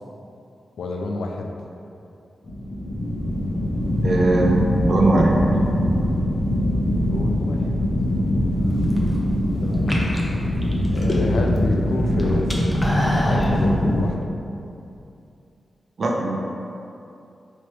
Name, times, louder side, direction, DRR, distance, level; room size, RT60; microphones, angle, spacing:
voice 1, 0.8-1.5 7.0-7.8 9.6-10.0 10.9-14.2, left 2 dB, 85° left, 1 dB, 0.4 m, -28 dB
sound 1, 2.4-14.1, left 1 dB, 55° left, 1.0 m, -22 dB
voice 2, 4.0-5.4 16.0-16.4, right 2 dB, 65° right, 0 dB, 0.6 m, -20 dB
sound 2, 8.7-9.2 9.7-11.6 11.9-13.5, equal, 15° left, 0.7 m, -28 dB
3.2 x 3.0 x 4.5 m, 2.7 s
cardioid pair, 45°, 0 cm